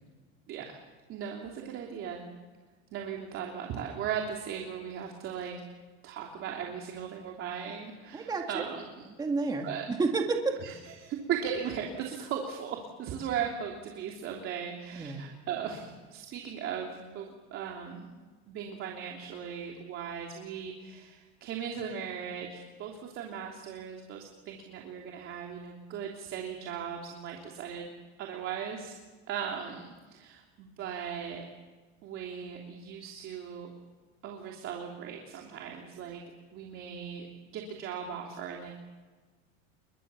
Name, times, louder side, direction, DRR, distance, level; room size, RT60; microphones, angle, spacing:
voice 1, 0.5-0.8 1.1-2.2 2.9-5.5 6.0-8.8 9.6-9.9 10.6-10.7 11.0-18.2 18.5-27.9 28.2-28.9 29.3-31.5 32.0-33.7 34.2-36.2 36.5-38.7, right 8 dB, 40° right, 0 dB, 3.1 m, -38 dB
voice 2, 8.1-8.7 9.2-10.5 14.9-15.3, right 3 dB, 10° right, 2 dB, 2.0 m, -30 dB
28.5 x 23.0 x 7.0 m, 1.3 s
supercardioid pair, 155°, 32 cm